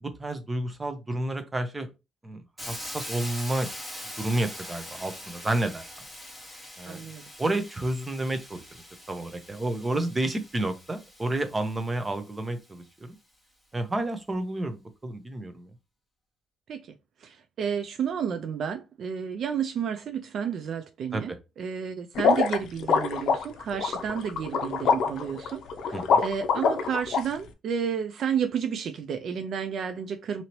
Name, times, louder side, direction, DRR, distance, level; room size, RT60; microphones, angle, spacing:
voice 1, 0.0-1.9 2.2-3.7 4.2-5.8 6.8-7.0 7.4-8.6 9.1-13.2 13.7-15.7 21.1-21.2 25.9-26.2, right 1 dB, 20° right, 0.7 m, -30 dB
Hiss, 2.6-12.5, left 1 dB, ahead, 0.9 m, -42 dB
voice 2, 6.9-7.2 16.7-16.9 17.2-30.4, right 7 dB, 60° right, 0.3 m, -31 dB
sound 1, 22.2-27.2, left 5 dB, 70° left, 0.5 m, -24 dB
2.8 x 2.8 x 2.9 m
cardioid pair, 105°, 0 cm